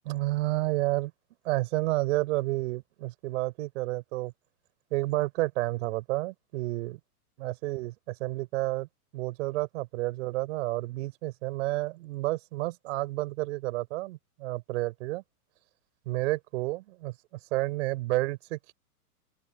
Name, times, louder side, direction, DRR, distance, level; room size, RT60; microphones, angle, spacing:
voice 1, 0.0-1.1 1.4-4.3 4.9-7.0 7.4-8.9 9.1-15.2 16.1-17.1 17.5-18.7, right 19 dB, 50° right, 4.4 m, -30 dB
open air
hypercardioid pair, 140°, 46 cm